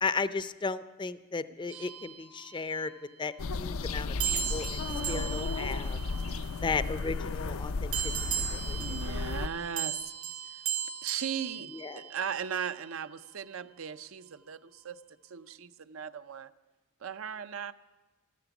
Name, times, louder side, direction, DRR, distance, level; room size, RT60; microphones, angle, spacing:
voice 1, 0.0-2.9 3.2-6.0 6.6-8.8 11.7-12.1, left 4 dB, 20° left, 13 dB, 0.5 m, -35 dB
sound 1, 1.7-2.9 4.2-6.9 7.9-12.4, right 9 dB, 85° right, 2.1 m, -37 dB
sound 2, 3.4-9.5, left 4 dB, 75° left, 0.5 m, -34 dB
voice 2, 4.8-5.3 8.8-10.1 11.0-15.0 15.3-16.5 17.0-17.7, right 7 dB, 70° right, 12 dB, 0.6 m, -38 dB
14.0 x 13.0 x 7.0 m, 1.2 s
head